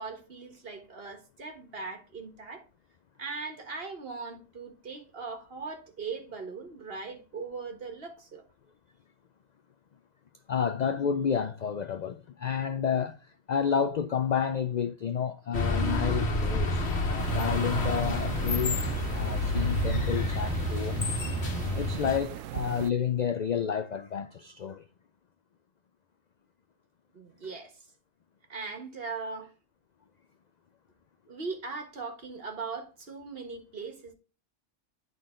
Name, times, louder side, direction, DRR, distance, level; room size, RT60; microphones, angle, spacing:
voice 1, 0.0-2.6 3.2-8.4 27.1-27.9 28.5-29.5 31.3-34.1, right 4 dB, 50° right, 1.6 m, -39 dB
voice 2, 10.5-18.8 19.1-21.2 21.7-24.8, left 7 dB, 75° left, 0.4 m, -30 dB
sound 1, 15.5-22.2, left 2 dB, 55° left, 1.5 m, -29 dB
sound 2, 17.2-22.9, right 12 dB, 80° right, 0.9 m, -39 dB
11.0 x 4.0 x 3.7 m
omnidirectional pair, 1.3 m